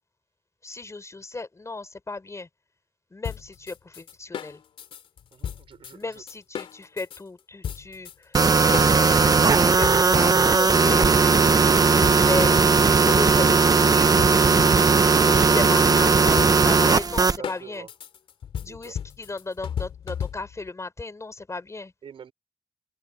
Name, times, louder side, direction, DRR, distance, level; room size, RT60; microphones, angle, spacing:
voice 1, 0.6-2.5 3.1-4.6 5.9-11.2 12.1-12.6 13.1-14.1 15.4-17.9 18.6-21.9, left 3 dB, 35° left, 4.3 m, -35 dB
sound 1, 3.2-7.2 7.6-8.4 8.7-11.6 12.0-20.7, left 8 dB, 85° left, 3.4 m, -35 dB
voice 2, 5.3-6.2 16.8-17.9 18.7-19.0 22.0-22.3, right 7 dB, 75° right, 5.4 m, -43 dB
sound 2, 8.3-17.4, right 4 dB, 45° right, 1.1 m, -18 dB
open air
cardioid pair, 60°, 9 cm